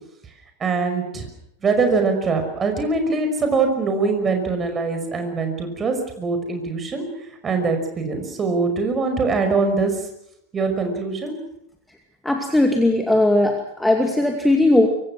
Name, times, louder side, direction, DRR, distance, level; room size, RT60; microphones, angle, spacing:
voice 1, 0.6-1.3 1.6-7.0 7.4-9.9 10.5-11.3, right 4 dB, 20° right, 5 dB, 5.6 m, -22 dB
voice 2, 12.2-14.9, left 1 dB, 5° left, 3 dB, 2.4 m, -18 dB
25.0 x 23.5 x 6.3 m, 0.79 s
figure-of-eight pair, 90°, 0 cm